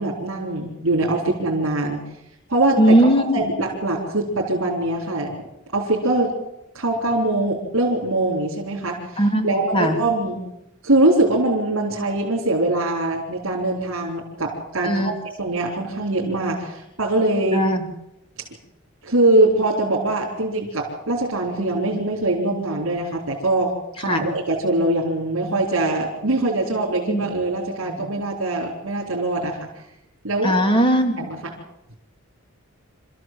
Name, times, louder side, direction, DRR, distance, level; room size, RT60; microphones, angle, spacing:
voice 1, 0.0-2.0 2.5-3.0 3.3-5.3 5.7-6.3 6.7-10.4 10.8-17.6 19.0-23.7 24.0-29.6 30.2-30.5 31.2-31.5, right 2 dB, 65° right, -4 dB, 4.4 m, -22 dB
voice 2, 2.8-3.4 9.2-10.0 14.8-15.1 17.5-17.9 24.1-24.2 27.1-27.3 27.9-28.1 30.4-31.3, equal, 25° left, 5 dB, 2.6 m, -19 dB
27.0 x 14.5 x 7.8 m, 0.87 s
head